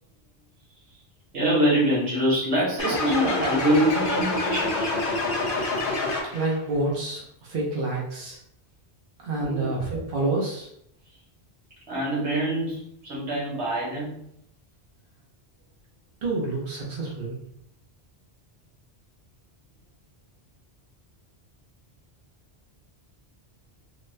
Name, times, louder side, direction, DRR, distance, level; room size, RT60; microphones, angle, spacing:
voice 1, 1.3-4.9 9.3-9.7 11.9-14.2, equal, 90° right, -6 dB, 1.5 m, -24 dB
sound 1, 2.8-6.6, left 2 dB, 60° left, 0.8 m, -27 dB
voice 2, 6.3-8.4 9.2-10.7 16.2-17.5, right 2 dB, 60° right, -4 dB, 0.9 m, -28 dB
3.8 x 2.1 x 2.6 m, 0.71 s
omnidirectional pair, 1.1 m